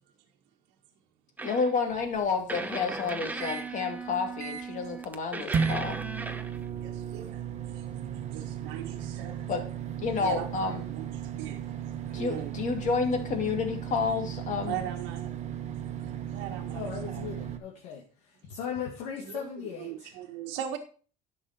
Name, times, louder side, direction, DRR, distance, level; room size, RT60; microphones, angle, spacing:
voice 1, 1.4-6.0 9.5-9.6 10.0-10.8 12.1-14.8, left 5 dB, 45° left, 2.4 m, -30 dB
sound 1, 1.4-1.8 2.5-6.7, right 3 dB, 10° right, 0.8 m, -37 dB
sound 2, 1.9-3.7 4.1-4.2 4.4-4.9 5.5-17.6, right 8 dB, 40° right, 1.3 m, -35 dB
voice 2, 6.8-9.5 10.2-12.5 14.6-15.3 16.3-17.2 19.2-19.5 19.8-20.8, right 10 dB, 80° right, 1.5 m, -40 dB
voice 3, 16.7-20.1, left 7 dB, 75° left, 2.1 m, -38 dB
11.0 x 6.6 x 4.4 m
cardioid pair, 125°, 18 cm